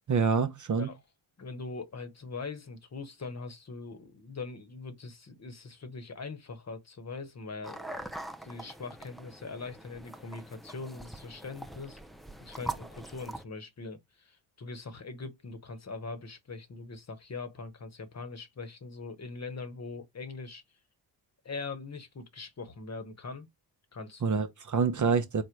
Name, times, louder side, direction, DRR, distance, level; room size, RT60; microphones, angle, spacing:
voice 1, 0.1-0.9 24.2-25.4, right 5 dB, 40° right, 0.8 m, -26 dB
voice 2, 1.4-8.0 8.4-12.0 12.4-20.6 21.4-23.5 23.9-24.4, left 4 dB, 30° left, 1.1 m, -42 dB
sound 1, 7.6-13.4, right 1 dB, ahead, 0.4 m, -43 dB
3.8 x 2.1 x 4.4 m
hypercardioid pair, 50°, 49 cm